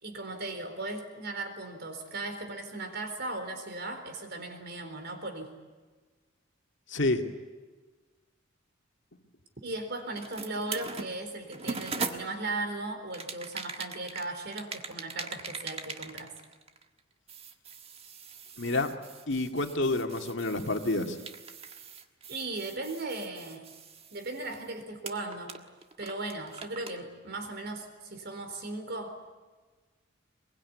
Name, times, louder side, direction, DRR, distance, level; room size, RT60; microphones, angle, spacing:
voice 1, 0.0-5.6 9.6-16.4 22.3-23.7 24.1-25.6 26.0-29.3, right 2 dB, 50° right, 7 dB, 4.2 m, -37 dB
voice 2, 6.9-7.2 18.6-19.0 19.3-21.2, left 2 dB, 60° left, 5 dB, 2.2 m, -28 dB
sound 1, 10.2-12.6 13.1-17.0 17.3-24.7 25.0-27.0, right 5 dB, 30° right, 1.5 m, -41 dB
23.0 x 22.5 x 9.7 m, 1.4 s
head